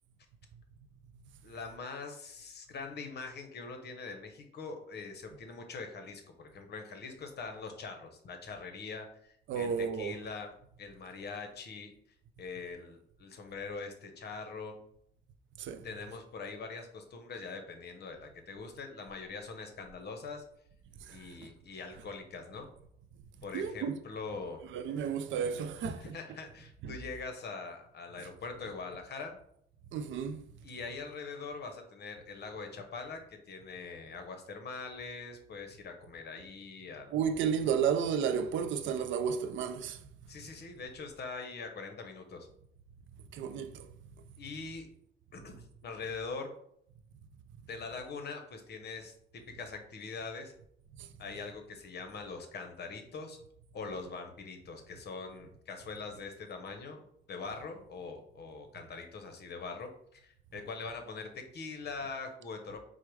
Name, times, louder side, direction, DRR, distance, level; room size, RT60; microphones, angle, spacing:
voice 1, 1.4-10.5 10.8-11.9 12.4-14.8 15.8-20.4 21.1-22.7 23.4-24.7 26.0-29.4 30.6-33.2 33.5-37.2 40.3-42.5 44.4-44.9 45.3-45.5 45.8-46.5 47.7-49.1 49.5-50.5 51.2-53.4 53.7-62.8, left 4 dB, 55° left, 0.9 m, -43 dB
voice 2, 9.5-10.2 15.6-15.9 21.0-21.4 23.5-24.0 24.7-26.2 26.8-26.9 29.9-30.4 37.1-40.0 43.3-43.9 51.0-51.1, right 7 dB, 70° right, 0.4 m, -32 dB
4.6 x 2.1 x 4.6 m
cardioid pair, 90°, 20 cm